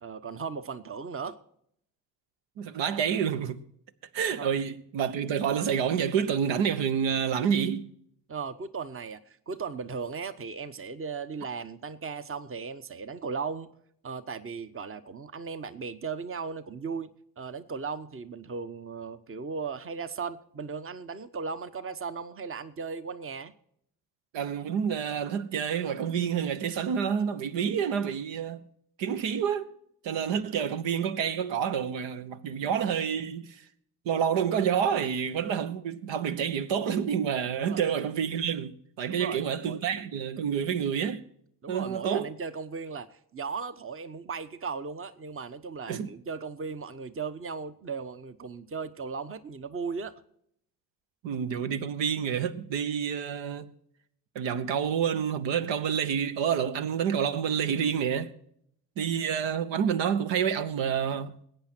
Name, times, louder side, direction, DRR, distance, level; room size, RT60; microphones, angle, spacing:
voice 1, 0.0-1.4 4.4-4.5 8.3-13.7 14.0-17.1 17.4-23.5 37.6-37.8 39.1-39.8 41.6-50.1, right 5 dB, 25° right, 1.1 m, -37 dB
voice 2, 2.6-3.6 4.1-7.9 24.3-28.6 29.0-29.7 30.0-33.6 34.0-41.2 41.7-42.3 45.9-46.1 51.2-53.7 54.3-58.3 59.0-61.4, right 7 dB, 65° right, 1.1 m, -28 dB
20.5 x 9.1 x 4.4 m
hypercardioid pair, 45°, 48 cm